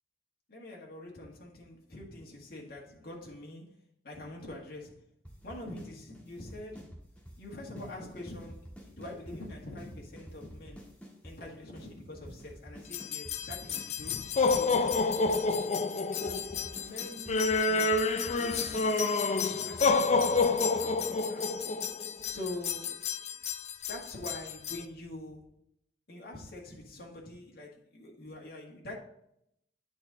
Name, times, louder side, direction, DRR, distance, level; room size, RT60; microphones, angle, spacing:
voice 1, 0.5-3.8 4.0-5.0 5.4-7.0 7.4-10.9 11.2-14.9 16.1-21.6 22.3-23.1 23.9-25.5 26.1-28.9, left 1 dB, 60° left, 1.7 m, -45 dB
sound 1, 5.2-5.9 6.1-7.4 7.8-7.9 8.2-11.4 11.8-11.9 12.1-13.9 14.1-15.4 15.8-15.9 16.2-21.2, equal, 5° left, 1.5 m, -49 dB
sound 2, 12.9-24.8, left 4 dB, 40° left, 0.4 m, -29 dB
9.0 x 4.4 x 3.9 m
head